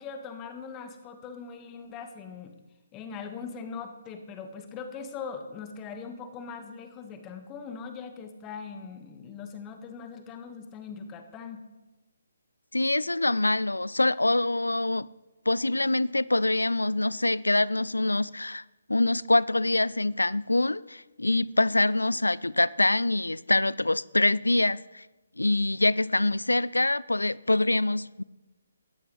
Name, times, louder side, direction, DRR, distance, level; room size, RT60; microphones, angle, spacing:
voice 1, 0.0-2.5 2.9-11.6, left 5 dB, 20° left, 1.6 m, -41 dB
voice 2, 12.7-15.1 15.5-18.6 18.9-25.1 25.4-28.2, left 2 dB, 85° left, 0.4 m, -25 dB
17.5 x 13.5 x 3.4 m
figure-of-eight pair, 140°, 0 cm